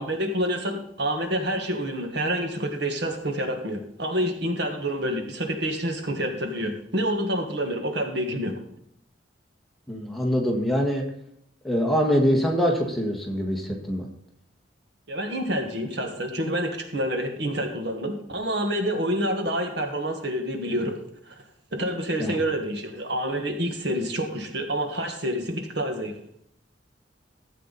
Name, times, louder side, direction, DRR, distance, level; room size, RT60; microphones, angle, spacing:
voice 1, 0.0-8.5 15.1-20.9 21.3-21.4 21.7-26.1, equal, 60° right, 4 dB, 1.7 m, -28 dB
voice 2, 9.9-11.0 11.6-14.1 22.2-22.4, equal, ahead, 0 dB, 1.7 m, -24 dB
14.5 x 8.4 x 4.2 m, 0.71 s
head